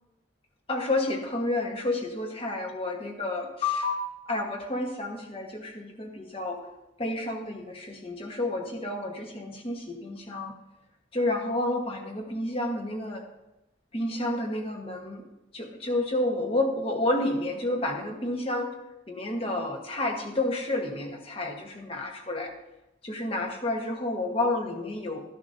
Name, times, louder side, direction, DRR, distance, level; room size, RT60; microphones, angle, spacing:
voice 1, 0.7-6.6 7.0-10.5 11.1-13.2 13.9-15.2 15.5-18.7 19.1-22.5 23.0-25.2, left 2 dB, 30° left, 2 dB, 1.3 m, -30 dB
13.0 x 10.0 x 2.7 m, 0.92 s
head